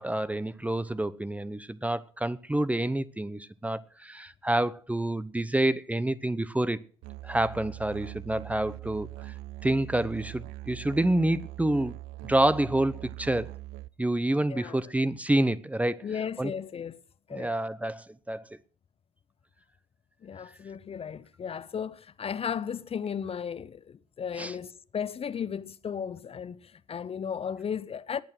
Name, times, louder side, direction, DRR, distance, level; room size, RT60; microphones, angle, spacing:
voice 1, 0.0-6.8 7.2-9.3 9.6-11.9 12.2-13.5 14.0-16.1 16.4-16.5 17.3-18.5 24.4-24.5, right 1 dB, 10° right, 0.9 m, -28 dB
Musical instrument, 7.0-13.9, right 17 dB, 70° right, 0.6 m, -42 dB
voice 2, 16.0-17.0 17.3-17.5 20.2-28.2, left 7 dB, 35° left, 0.8 m, -35 dB
19.5 x 8.7 x 6.2 m
hypercardioid pair, 60°, 17 cm